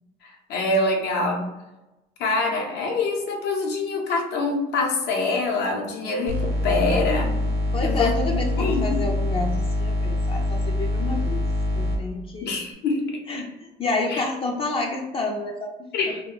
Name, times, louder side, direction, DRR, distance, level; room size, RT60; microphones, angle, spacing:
voice 1, 0.5-1.4 2.2-7.4 7.8-8.1 8.6-9.0 12.4-13.0 14.1-14.2 15.9-16.2, left 3 dB, 80° left, 0 dB, 0.7 m, -25 dB
sound 1, 6.3-12.0, left 1 dB, 65° right, 0.7 m, -24 dB
voice 2, 7.7-11.4 11.7-12.5 13.3-13.5 13.8-15.9, left 2 dB, 35° left, 1 dB, 0.4 m, -29 dB
2.2 x 2.2 x 3.7 m, 1.0 s
cardioid pair, 110°, 17 cm